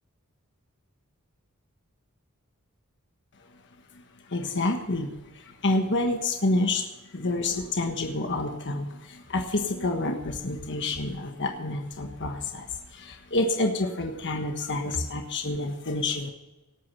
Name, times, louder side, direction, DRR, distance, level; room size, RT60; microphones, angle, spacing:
voice 1, 4.3-6.9 7.1-16.3, left 2 dB, 55° left, 4 dB, 1.3 m, -28 dB
18.5 x 8.7 x 5.5 m, 1.1 s
head